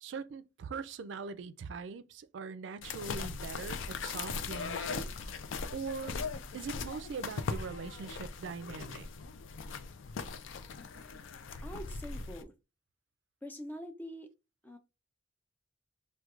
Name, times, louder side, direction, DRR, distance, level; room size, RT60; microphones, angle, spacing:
voice 1, 0.0-5.4 5.7-6.1 6.5-9.1, right 5 dB, 70° right, 0.3 m, -42 dB
sound 1, 2.8-12.4, left 5 dB, 85° left, 0.4 m, -39 dB
voice 2, 10.8-11.3 11.6-12.5 13.4-14.3 14.6-14.8, equal, 10° left, 0.4 m, -45 dB
4.3 x 2.2 x 2.4 m
head